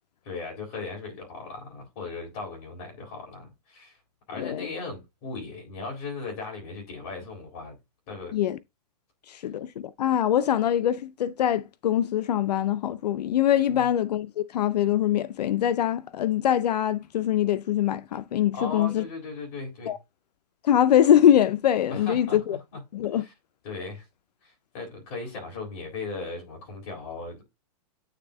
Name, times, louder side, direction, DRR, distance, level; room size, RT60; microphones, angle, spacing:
voice 1, 0.2-4.0 4.3-7.8 8.1-8.4 13.7-13.9 18.5-19.9 21.9-22.8 23.1-23.3 23.6-24.0 24.4-27.4, left 4 dB, 35° left, 3.9 m, -37 dB
voice 2, 4.3-4.7 8.3-8.6 9.3-19.0 19.9-20.0 20.6-22.6 22.9-23.2, left 10 dB, 75° left, 0.5 m, -23 dB
9.0 x 3.5 x 3.5 m
hypercardioid pair, 155°, 21 cm